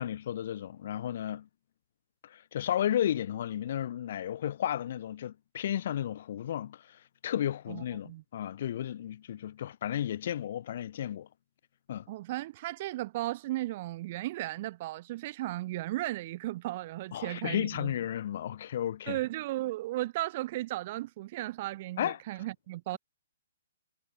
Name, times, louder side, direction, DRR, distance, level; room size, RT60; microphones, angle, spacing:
voice 1, 0.0-1.5 2.2-11.3 11.9-12.0 17.1-19.2 22.0-22.2, left 10 dB, 55° left, 4.0 m, -33 dB
voice 2, 7.7-8.2 12.1-17.9 19.1-23.0, right 17 dB, 45° right, 4.1 m, -35 dB
hypercardioid pair, 135°, 0 cm